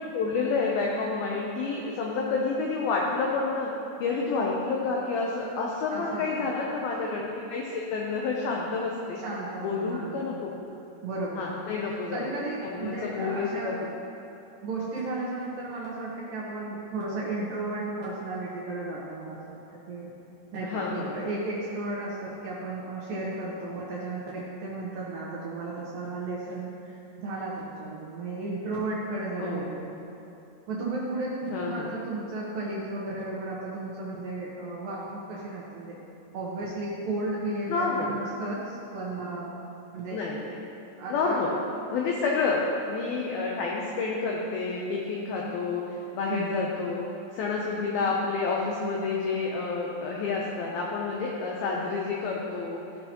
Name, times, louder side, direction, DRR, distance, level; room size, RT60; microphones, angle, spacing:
voice 1, 0.0-3.7 4.0-9.2 9.6-10.5 11.4-12.3 12.6-13.7 20.6-21.1 29.4-29.8 31.5-32.0 37.7-38.1 40.1-40.5 41.1-41.5 41.9-42.6 42.9-47.0 47.3-52.8, left 4 dB, 90° left, -2 dB, 2.1 m, -29 dB
voice 2, 5.9-6.5 9.2-10.4 11.0-13.7 14.6-20.1 20.5-30.0 30.7-36.0 36.3-39.6 39.9-40.2 41.0-41.4 46.3-46.7, right 2 dB, 70° right, -6 dB, 2.2 m, -34 dB
15.0 x 5.5 x 2.9 m, 2.9 s
omnidirectional pair, 5.2 m